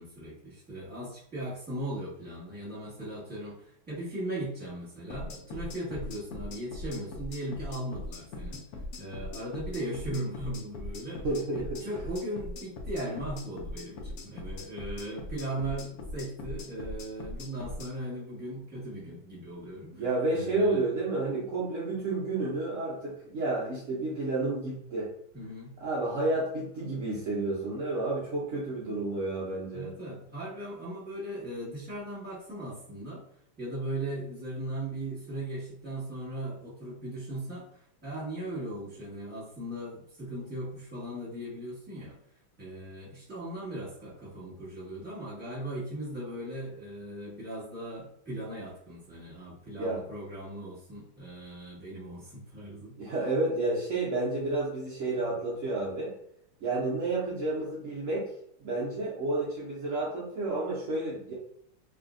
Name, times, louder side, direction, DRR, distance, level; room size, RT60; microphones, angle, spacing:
voice 1, 0.0-8.6 9.0-11.3 11.5-20.0 20.3-20.8 25.3-25.7 29.7-33.2 33.6-42.2 42.6-53.0, right 1 dB, 5° right, -8 dB, 1.1 m, -38 dB
sound 1, 5.1-17.9, left 2 dB, 80° left, 0.8 m, -40 dB
voice 2, 11.2-11.8 19.9-25.1 25.8-29.9 49.8-50.0 53.0-56.1 56.6-58.3 58.6-61.3, right 2 dB, 85° right, -5 dB, 0.6 m, -30 dB
3.1 x 2.6 x 2.5 m, 0.69 s
omnidirectional pair, 2.2 m